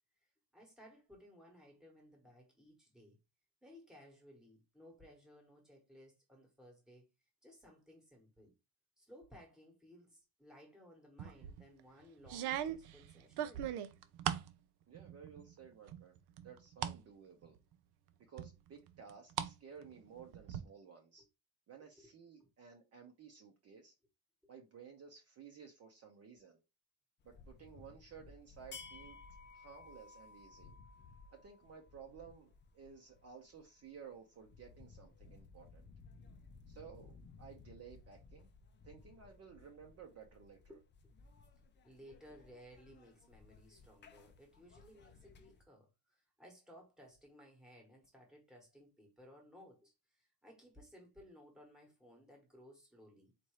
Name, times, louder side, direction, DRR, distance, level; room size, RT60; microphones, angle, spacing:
voice 1, 0.2-3.2 3.6-7.0 7.4-8.5 9.0-13.8 21.8-22.1 22.4-22.5 24.4-24.5 40.7-40.8 41.8-53.3, equal, ahead, 1.2 m, -60 dB
sound 1, 11.2-11.6 12.2-14.5 14.9-15.5 15.9-17.0 17.4-17.5 18.4-19.5 19.8-20.6, right 10 dB, 70° right, 0.6 m, -39 dB
voice 2, 14.9-16.2 16.4-17.6 18.2-21.2 21.7-23.9 24.5-26.6 27.2-29.2 29.5-30.7 31.3-35.9 36.7-38.5 38.8-40.8, right 6 dB, 35° right, 0.8 m, -55 dB
sound 2, 27.2-45.6, left 4 dB, 30° left, 0.5 m, -58 dB
4.3 x 2.6 x 4.7 m
cardioid pair, 180°, 41 cm